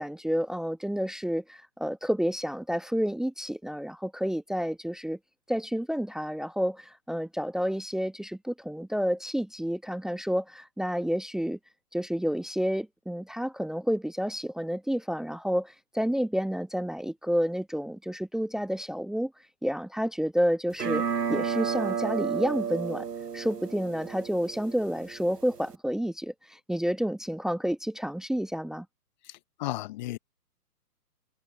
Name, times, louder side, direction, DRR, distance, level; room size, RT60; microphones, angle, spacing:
voice 1, 0.0-5.2 5.5-11.6 11.9-19.3 19.6-21.0 21.3-23.1 23.3-28.9, equal, ahead, 1.3 m, -30 dB
sound 1, 20.7-25.8, right 7 dB, 75° right, 1.3 m, -32 dB
voice 2, 29.2-30.2, left 16 dB, 30° left, 1.2 m, -35 dB
figure-of-eight pair, 130°, 47 cm